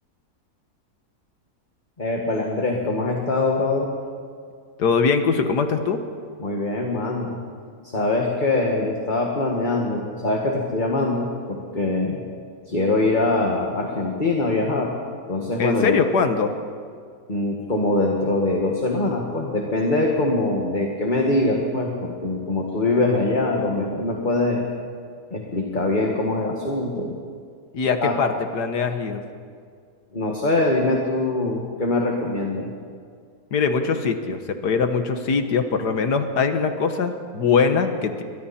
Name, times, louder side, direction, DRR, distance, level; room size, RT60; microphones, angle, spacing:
voice 1, 2.0-3.9 6.4-7.4 7.9-12.2 12.7-14.9 15.3-16.0 17.3-24.7 25.3-27.2 28.0-28.2 30.1-32.7, left 2 dB, 30° left, 0 dB, 2.0 m, -23 dB
voice 2, 4.8-6.0 15.6-16.6 27.7-29.2 33.5-38.2, left 5 dB, 85° left, 7 dB, 1.9 m, -22 dB
30.0 x 23.0 x 4.3 m, 2.1 s
omnidirectional pair, 1.7 m